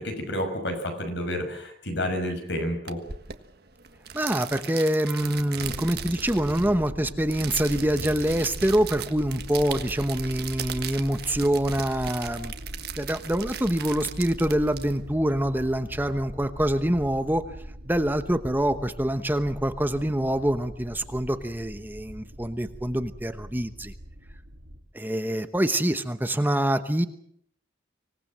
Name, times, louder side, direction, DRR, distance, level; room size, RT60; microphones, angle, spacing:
voice 1, 0.0-3.0, left 1 dB, 70° left, 6 dB, 6.3 m, -30 dB
sound 1, 2.9-15.5, right 8 dB, 60° right, 1.6 m, -38 dB
voice 2, 4.1-12.5 12.9-17.4 17.8-23.9 24.9-27.1, right 1 dB, 10° right, 9 dB, 1.0 m, -25 dB
sound 2, 5.6-24.8, equal, 75° right, 2.9 m, -41 dB
25.5 x 18.5 x 7.6 m, 0.68 s
head